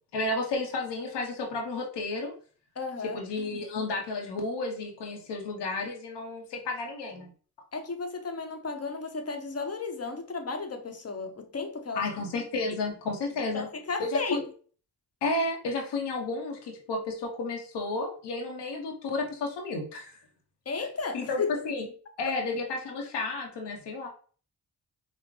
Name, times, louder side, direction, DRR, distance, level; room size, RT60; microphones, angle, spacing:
voice 1, 0.1-2.3 3.0-7.3 11.9-13.7 14.0-14.4 15.2-20.2 21.1-21.9 22.2-24.1, left 3 dB, 90° left, 0.8 m, -32 dB
voice 2, 2.8-3.2 7.7-12.1 13.5-14.4 20.7-21.6 22.2-22.3, left 4 dB, 35° left, 0.9 m, -33 dB
5.0 x 2.0 x 2.9 m
cardioid pair, 60°, 40 cm